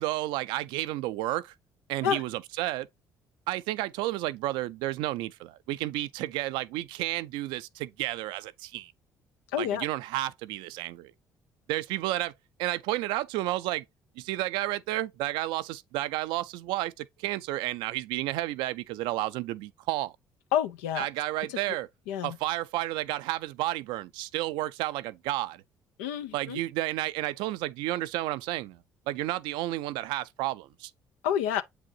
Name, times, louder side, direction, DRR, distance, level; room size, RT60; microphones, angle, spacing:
voice 1, 0.0-1.5 1.9-2.9 3.5-8.9 9.6-11.1 11.7-12.3 12.6-13.8 14.2-20.1 21.0-21.9 22.2-25.6 26.3-28.8 29.1-30.9, right 16 dB, 75° right, 0.4 m, -31 dB
voice 2, 9.5-9.8 20.5-21.1 22.1-22.3 26.0-26.6 31.2-31.6, left 9 dB, 85° left, 0.6 m, -28 dB
7.7 x 4.9 x 2.8 m
hypercardioid pair, 60°, 8 cm